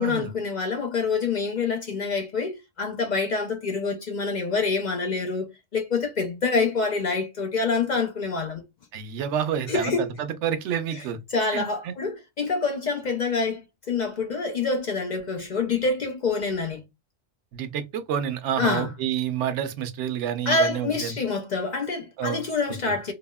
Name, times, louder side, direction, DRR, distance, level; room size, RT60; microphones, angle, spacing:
voice 1, 0.0-8.6 9.7-10.1 10.9-16.8 18.6-18.9 20.5-23.1, left 4 dB, 55° left, 0.6 m, -26 dB
voice 2, 8.9-9.9 10.2-11.2 11.5-11.9 17.5-21.1 22.2-22.4 22.9-23.0, right 9 dB, 90° right, 0.9 m, -28 dB
4.1 x 2.0 x 2.2 m
omnidirectional pair, 1.2 m